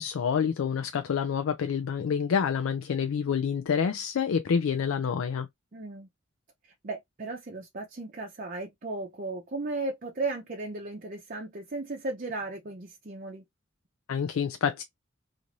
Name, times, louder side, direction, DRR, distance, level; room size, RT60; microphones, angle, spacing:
voice 1, 0.0-5.5 14.1-14.8, left 7 dB, 85° left, 0.4 m, -27 dB
voice 2, 5.7-6.1 6.8-13.4, right 2 dB, 40° right, 0.6 m, -35 dB
3.0 x 2.5 x 2.5 m
head